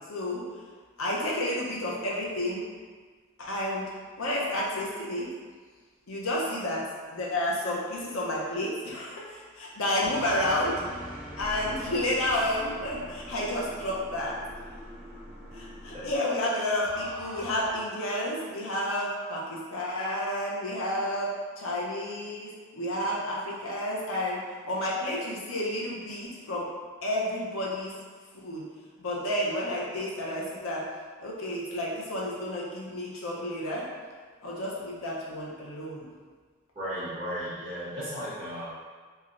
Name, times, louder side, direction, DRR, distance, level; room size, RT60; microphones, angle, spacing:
voice 1, 0.1-0.4 1.0-2.6 3.4-3.9 4.2-5.3 6.1-10.8 11.4-14.4 15.5-21.3 21.6-26.7 27.0-27.9 28.4-28.6 29.0-30.9 31.2-33.9 34.4-36.1, left 1 dB, 80° left, -4 dB, 0.6 m, -31 dB
sound 1, 10.0-17.8, equal, 5° left, 0.5 m, -43 dB
voice 2, 36.7-38.7, equal, 25° right, -12 dB, 1.1 m, -35 dB
3.2 x 2.7 x 2.5 m, 1.5 s
head